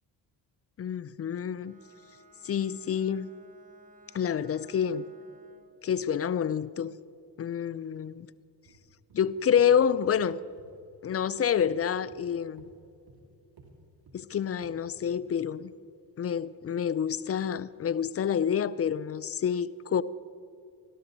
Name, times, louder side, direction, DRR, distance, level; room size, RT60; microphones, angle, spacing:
voice 1, 0.8-1.7 2.4-3.3 4.1-5.1 5.8-7.0 7.4-8.3 9.1-10.4 11.0-12.6 14.1-15.7 16.2-20.0, left 8 dB, 35° left, 0.4 m, -28 dB
Bowed string instrument, 1.5-5.8, right 2 dB, 20° right, 1.9 m, -58 dB
sound 1, 8.6-8.8 9.1-9.3 9.6-9.7 10.0-10.2 10.6-10.7 11.1-11.3 11.6-11.7 12.1-12.2 12.6-12.7 13.1-13.2 13.6-13.7 14.1-14.2 14.6-14.7 15.1-15.3 15.6-15.7, right 4 dB, 55° right, 2.7 m, -56 dB
14.0 x 12.0 x 4.0 m
supercardioid pair, 55°, 45 cm